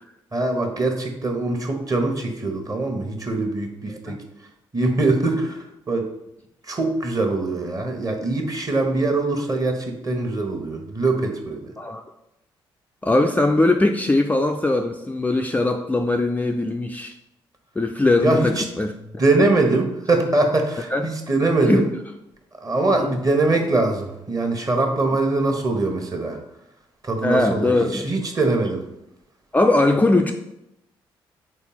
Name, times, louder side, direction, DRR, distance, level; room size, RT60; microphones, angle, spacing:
voice 1, 0.3-4.2 4.7-6.1 6.6-11.7 18.2-18.6 19.2-21.9 22.6-26.4 27.0-28.9, right 2 dB, 30° right, 3 dB, 1.3 m, -22 dB
voice 2, 13.0-17.1 17.8-18.9 19.4-19.5 20.9-21.1 21.6-21.8 22.8-23.1 27.2-28.0 29.5-30.3, left 2 dB, 15° left, 4 dB, 0.5 m, -20 dB
4.4 x 4.0 x 5.7 m, 0.85 s
figure-of-eight pair, 40°, 12 cm